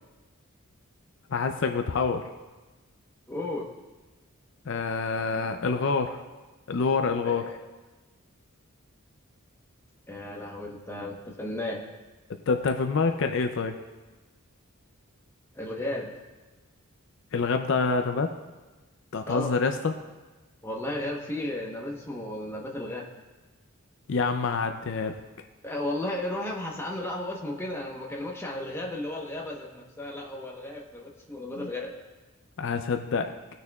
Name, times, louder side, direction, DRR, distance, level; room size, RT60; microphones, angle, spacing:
voice 1, 1.3-2.2 4.7-6.2 6.7-7.4 12.5-13.8 17.3-18.3 19.1-19.9 24.1-25.2 31.6-31.7 32.6-33.4, left 4 dB, 55° left, 6 dB, 0.5 m, -26 dB
voice 2, 3.3-3.7 7.2-7.6 10.1-11.8 15.6-16.1 19.3-19.5 20.6-23.0 25.6-31.9, left 1 dB, 10° left, -1 dB, 1.0 m, -34 dB
18.5 x 6.6 x 2.3 m, 1.2 s
head